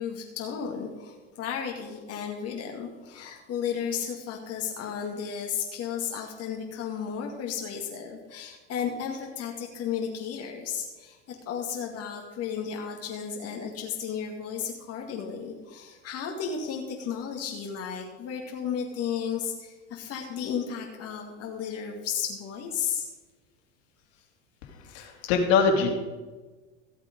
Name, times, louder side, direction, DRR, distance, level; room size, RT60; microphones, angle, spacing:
voice 1, 0.0-23.1 24.8-25.1, left 7 dB, 45° left, 1 dB, 2.1 m, -34 dB
voice 2, 24.6-26.0, left 5 dB, 65° left, 3 dB, 2.6 m, -24 dB
15.0 x 8.0 x 5.2 m, 1.3 s
hypercardioid pair, 90°, 35 cm